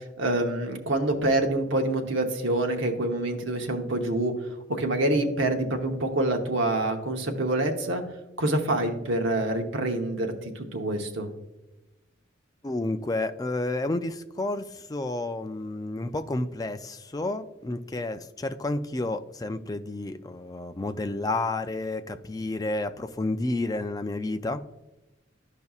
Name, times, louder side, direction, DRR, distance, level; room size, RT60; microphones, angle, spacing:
voice 1, 0.2-4.3 4.8-8.0 8.4-11.3, right 1 dB, 75° right, 3 dB, 0.9 m, -26 dB
voice 2, 12.6-24.6, left 2 dB, 20° left, 9 dB, 0.3 m, -30 dB
13.5 x 5.3 x 2.4 m, 1.0 s
head